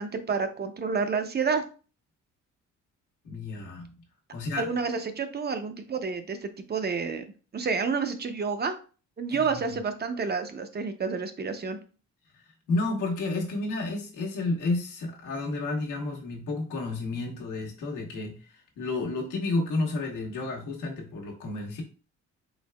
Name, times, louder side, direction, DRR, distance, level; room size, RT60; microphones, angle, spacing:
voice 1, 0.0-1.6 4.6-7.3 7.5-8.7 9.2-11.8, right 5 dB, 35° right, 8 dB, 0.6 m, -29 dB
voice 2, 3.2-3.9 4.3-4.7 9.3-9.8 12.7-18.4 18.8-21.8, left 2 dB, 90° left, -1 dB, 1.2 m, -31 dB
4.5 x 3.3 x 2.2 m, 0.37 s
cardioid pair, 90°, 30 cm